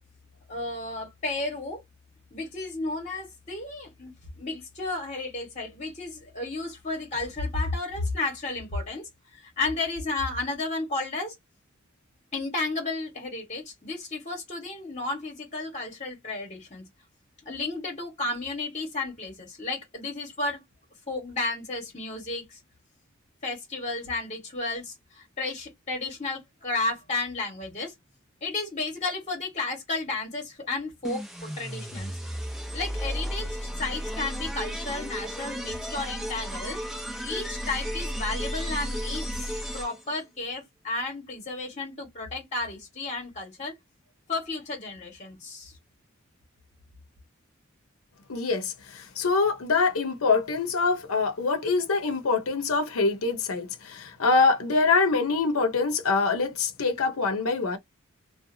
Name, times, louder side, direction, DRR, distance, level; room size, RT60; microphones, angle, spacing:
voice 1, 0.5-1.8 2.3-11.3 12.3-16.9 17.4-20.6 21.1-22.6 23.4-27.9 28.4-32.1 32.7-36.8 37.2-43.7 44.3-45.7, left 3 dB, 35° left, 1.3 m, -33 dB
sound 1, 31.0-40.2, equal, ahead, 0.7 m, -33 dB
voice 2, 48.3-57.8, left 4 dB, 90° left, 0.8 m, -24 dB
2.7 x 2.2 x 2.6 m
head